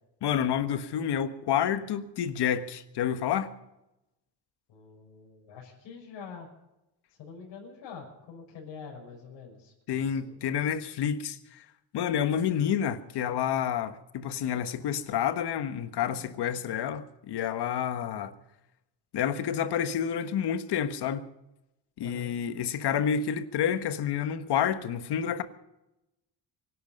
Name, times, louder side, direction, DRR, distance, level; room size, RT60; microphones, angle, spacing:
voice 1, 0.2-3.5 9.9-11.6 11.9-18.4 19.1-21.2 22.0-25.4, left 8 dB, 60° left, 1.4 m, -29 dB
voice 2, 4.7-6.5 7.2-10.6 22.0-22.3, left 6 dB, 80° left, 6.0 m, -46 dB
24.0 x 11.5 x 5.3 m
cardioid pair, 135°, 44 cm